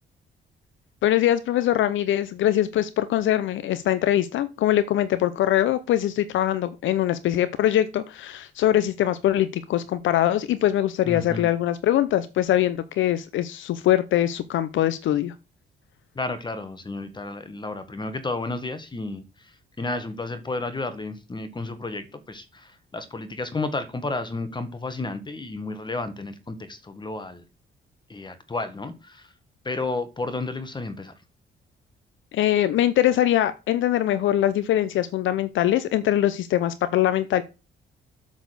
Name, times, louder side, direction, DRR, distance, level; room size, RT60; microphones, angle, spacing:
voice 1, 1.0-15.3 32.3-37.4, left 12 dB, 75° left, 13 dB, 0.6 m, -22 dB
voice 2, 11.0-11.5 16.1-27.4 28.1-29.3 29.6-31.1, left 3 dB, 20° left, 11 dB, 1.4 m, -32 dB
8.2 x 4.2 x 6.7 m, 0.29 s
cardioid pair, 90°, 20 cm